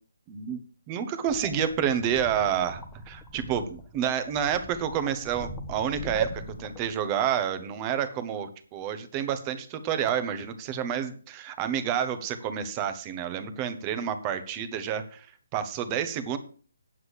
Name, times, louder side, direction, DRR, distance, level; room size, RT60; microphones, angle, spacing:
voice 1, 0.3-0.6 0.9-15.3 15.5-16.4, right 8 dB, 20° right, 10 dB, 1.2 m, -29 dB
sound 1, 1.3-7.4, left 2 dB, 5° left, 1.2 m, -43 dB
9.4 x 8.2 x 6.5 m, 0.42 s
figure-of-eight pair, 150°, 0 cm